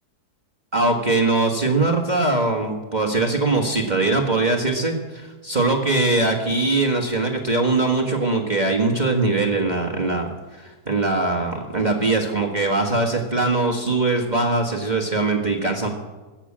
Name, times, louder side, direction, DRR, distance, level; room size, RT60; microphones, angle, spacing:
voice 1, 0.7-15.9, right 2 dB, 25° right, 1 dB, 1.6 m, -21 dB
22.0 x 7.5 x 8.7 m, 1.2 s
omnidirectional pair, 1.8 m